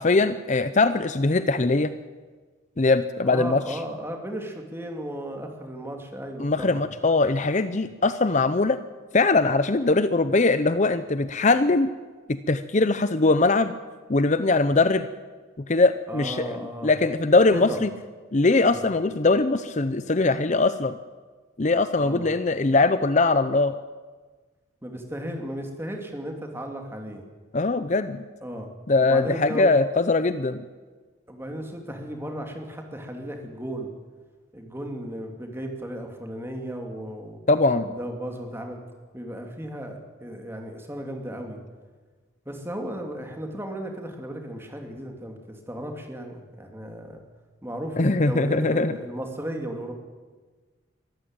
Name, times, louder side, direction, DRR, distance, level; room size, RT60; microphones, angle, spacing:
voice 1, 0.0-1.9 2.8-3.8 6.4-8.8 9.1-11.9 12.3-13.7 14.1-15.1 15.7-16.6 16.8-17.9 18.3-20.9 21.6-23.7 27.5-28.2 28.9-30.6 37.5-37.9 48.0-49.0, left 3 dB, 35° left, 12 dB, 0.6 m, -21 dB
voice 2, 3.2-6.9 16.1-16.9 17.5-17.8 18.6-18.8 21.9-22.3 24.8-27.2 28.4-28.7 29.0-29.8 31.3-33.9 34.5-37.4 37.8-38.8 39.1-41.6 42.4-47.2 47.6-49.9, right 1 dB, 10° right, 3 dB, 2.7 m, -35 dB
23.0 x 14.0 x 9.0 m, 1.4 s
head